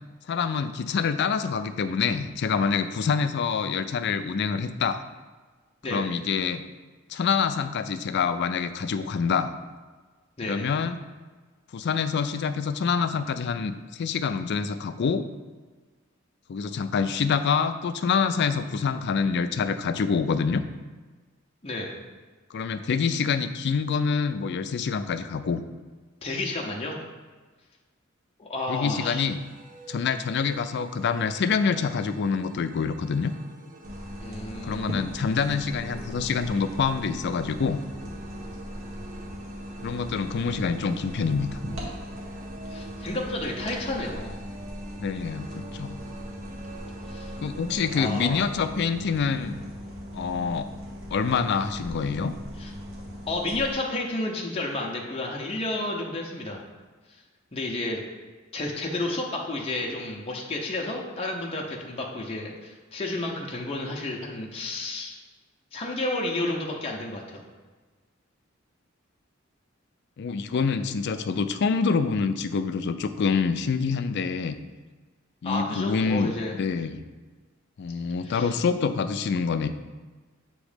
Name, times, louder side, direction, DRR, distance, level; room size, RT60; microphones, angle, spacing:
voice 1, 0.3-5.0 5.9-6.6 7.1-9.5 10.4-11.0 11.7-15.3 16.5-20.6 22.5-25.6 28.7-29.4 29.9-33.3 34.6-37.8 39.8-41.6 45.0-46.0 47.4-49.5 50.1-50.7 51.1-52.3 70.2-74.6 75.4-76.3 76.6-77.0 77.8-79.7, left 5 dB, 55° left, 11 dB, 0.4 m, -26 dB
voice 2, 10.4-10.7 21.6-21.9 26.2-27.0 28.4-29.2 34.2-35.0 42.7-44.4 47.1-47.3 47.9-48.5 52.6-52.7 53.3-56.6 57.1-57.2 57.5-58.0 58.5-65.2 65.7-67.4 75.4-76.5 78.2-78.5, left 2 dB, 30° left, -2 dB, 0.7 m, -31 dB
sound 1, 28.9-48.7, right 4 dB, 40° right, 0.6 m, -47 dB
sound 2, 33.8-53.7, equal, 80° right, 1.5 m, -39 dB
7.1 x 3.1 x 5.0 m, 1.4 s
head